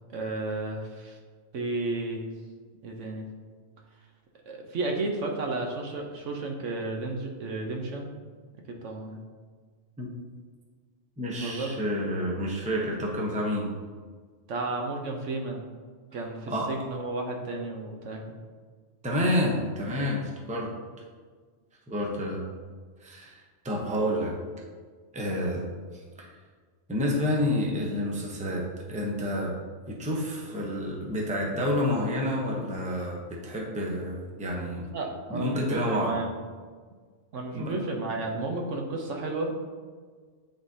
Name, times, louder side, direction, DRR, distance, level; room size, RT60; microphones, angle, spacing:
voice 1, 0.1-1.2 1.5-2.2 2.8-3.3 4.5-8.1 8.8-9.2 11.4-11.7 14.5-15.6 16.1-18.4 34.9-36.3 37.3-39.5, right 2 dB, 70° right, 1 dB, 1.1 m, -32 dB
voice 2, 11.2-13.7 16.5-16.7 19.0-20.7 21.9-22.4 23.0-23.4 23.6-24.3 25.1-25.6 26.2-26.3 26.9-29.5 29.9-34.8 35.3-36.1 37.5-37.7, left 1 dB, 5° right, -2 dB, 0.7 m, -29 dB
10.0 x 3.8 x 2.7 m, 1.5 s
omnidirectional pair, 1.4 m